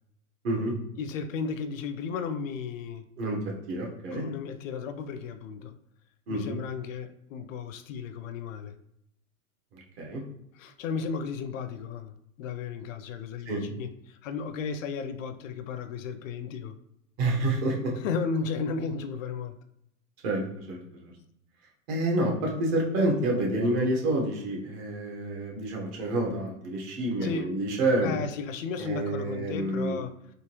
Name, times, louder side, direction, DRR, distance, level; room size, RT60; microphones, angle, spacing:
voice 1, 0.4-0.7 3.2-3.4 3.7-4.3 6.3-6.6 10.0-10.2 13.5-13.6 17.2-17.9 20.2-21.1 21.9-28.2 28.8-30.0, right 1 dB, 50° right, -1 dB, 1.1 m, -28 dB
voice 2, 1.0-3.0 4.1-5.8 6.3-8.7 10.5-16.8 18.0-19.6 27.2-27.5 28.0-30.1, left 5 dB, 65° left, 10 dB, 0.5 m, -34 dB
3.6 x 2.6 x 2.9 m, 0.76 s
hypercardioid pair, 130°, 42 cm